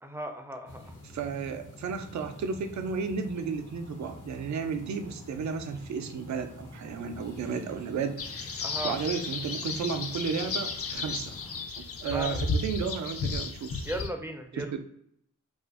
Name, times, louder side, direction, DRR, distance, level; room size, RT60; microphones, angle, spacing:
voice 1, 0.0-0.9 8.6-9.0 12.1-12.4 13.8-14.7, right 1 dB, 10° right, 5 dB, 0.4 m, -36 dB
sound 1, 0.7-11.7, left 1 dB, 80° left, 0.8 m, -47 dB
voice 2, 1.0-8.2 8.8-11.4 11.8-13.9 14.5-14.8, right 6 dB, 65° right, 8 dB, 0.4 m, -33 dB
sound 2, 8.2-14.1, left 4 dB, 50° left, 0.5 m, -33 dB
2.5 x 2.4 x 2.4 m, 0.71 s
cardioid pair, 45°, 31 cm